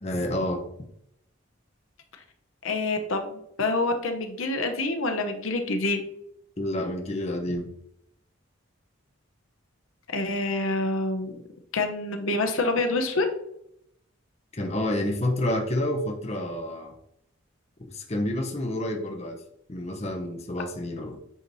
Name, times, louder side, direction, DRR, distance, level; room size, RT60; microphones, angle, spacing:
voice 1, 0.0-0.6 6.6-7.7 14.5-16.9 17.8-19.4 19.7-21.2, left 1 dB, 30° left, 2 dB, 0.8 m, -29 dB
voice 2, 2.6-6.0 10.1-11.3 11.7-13.2, left 2 dB, 75° left, 6 dB, 0.9 m, -27 dB
8.3 x 3.1 x 4.0 m, 0.75 s
head